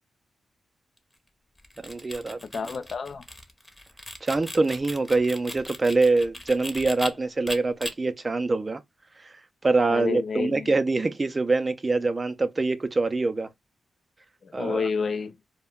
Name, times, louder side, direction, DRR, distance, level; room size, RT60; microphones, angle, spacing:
sound 1, 1.6-7.1 7.5-7.9, left 1 dB, 15° left, 0.8 m, -38 dB
voice 1, 1.8-2.4 4.2-8.8 9.2-9.3 9.6-13.5 14.5-14.9, right 3 dB, 35° right, 0.4 m, -24 dB
voice 2, 2.5-3.2 9.9-10.7 14.4-15.3, left 5 dB, 60° left, 0.4 m, -29 dB
2.2 x 2.2 x 3.5 m
cardioid pair, 65°, 0 cm